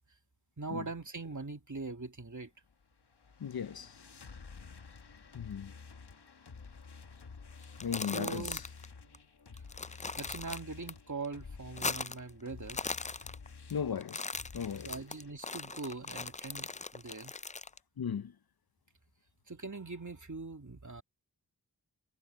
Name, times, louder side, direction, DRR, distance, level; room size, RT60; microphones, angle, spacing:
voice 1, 0.6-2.5 8.1-8.6 9.5-9.6 10.2-12.8 14.8-17.3 19.5-21.0, right 3 dB, 50° right, 2.4 m, -42 dB
sound 1, 2.6-15.3, left 5 dB, 85° left, 1.2 m, -52 dB
voice 2, 3.4-3.9 5.3-5.7 7.8-8.4 13.7-14.2 14.5-14.9 18.0-18.3, left 7 dB, 65° left, 0.6 m, -36 dB
sound 2, 7.6-8.9 9.1-9.2 9.6-10.9 11.2-12.3 12.6-13.7 14.0-17.8, left 4 dB, 20° left, 0.4 m, -39 dB
wide cardioid pair, 50°, 39 cm